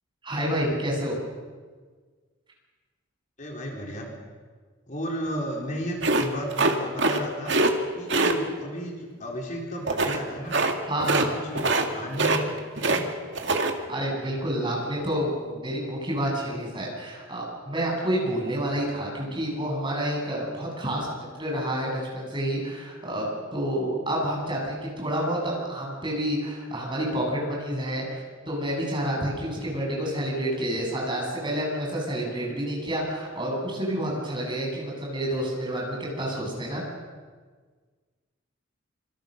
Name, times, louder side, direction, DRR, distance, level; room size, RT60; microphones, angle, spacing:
voice 1, 0.2-1.2 10.9-11.3 13.9-21.1 21.4-36.8, right 1 dB, 25° right, -2 dB, 7.9 m, -29 dB
voice 2, 3.4-4.1 4.9-7.5 7.9-10.6 11.3-13.1 29.7-29.8, equal, 40° left, 0 dB, 3.9 m, -34 dB
sound 1, 6.0-7.2 7.5-7.7 8.1-8.3 9.9-10.2 10.5-10.7 11.0-11.3 11.6-11.9 12.1-13.0 13.3-13.7, right 3 dB, 60° right, 2.3 m, -23 dB
26.5 x 26.0 x 6.6 m, 1.5 s
head